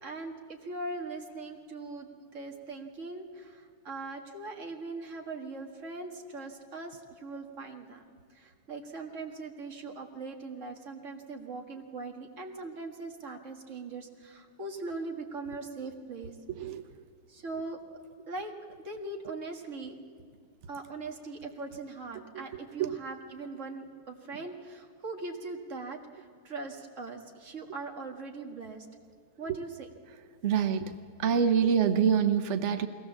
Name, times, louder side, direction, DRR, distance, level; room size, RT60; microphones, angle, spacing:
voice 1, 0.0-8.0 8.3-16.4 17.3-17.8 18.3-18.6 18.8-20.0 20.7-28.9 29.4-29.9, right 3 dB, 35° right, 2 dB, 2.0 m, -40 dB
voice 2, 30.4-30.9 31.2-32.9, right 7 dB, 70° right, 8 dB, 0.6 m, -25 dB
22.5 x 17.5 x 7.3 m, 2.1 s
omnidirectional pair, 2.4 m